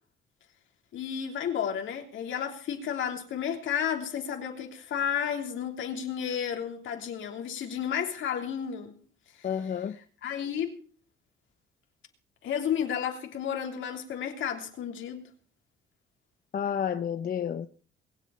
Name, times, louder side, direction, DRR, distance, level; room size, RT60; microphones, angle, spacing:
voice 1, 0.9-8.9 9.4-9.5 10.2-10.8 12.4-15.3, left 8 dB, 75° left, 3.3 m, -32 dB
voice 2, 9.4-10.0 16.5-17.7, left 8 dB, 45° left, 0.8 m, -30 dB
22.5 x 8.2 x 5.7 m
cardioid pair, 90°, 20 cm